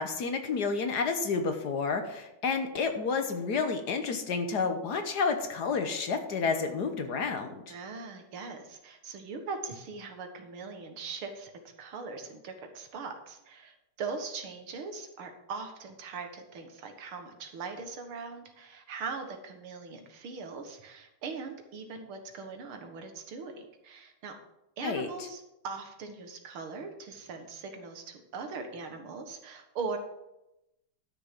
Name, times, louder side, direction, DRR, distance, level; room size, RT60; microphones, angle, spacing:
voice 1, 0.0-7.6 24.8-25.1, left 5 dB, 55° left, 7 dB, 1.4 m, -30 dB
voice 2, 7.7-24.4 24.8-30.0, right 4 dB, 85° right, 5 dB, 2.3 m, -40 dB
12.0 x 6.7 x 6.0 m, 0.90 s
omnidirectional pair, 2.3 m